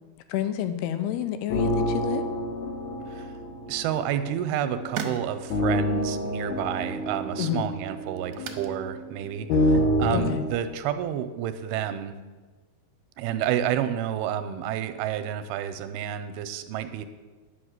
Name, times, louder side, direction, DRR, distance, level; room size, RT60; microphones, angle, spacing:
voice 1, 0.3-2.2 7.4-7.7 10.1-10.5, left 11 dB, 90° left, 10 dB, 2.8 m, -29 dB
sound 1, 1.5-10.5, left 1 dB, 60° left, 2.0 m, -28 dB
voice 2, 3.7-12.2 13.2-17.0, right 10 dB, 85° right, 10 dB, 2.6 m, -30 dB
sound 2, 4.0-11.3, right 7 dB, 70° right, 1.8 m, -43 dB
10.0 x 6.0 x 8.1 m, 1.3 s
omnidirectional pair, 4.5 m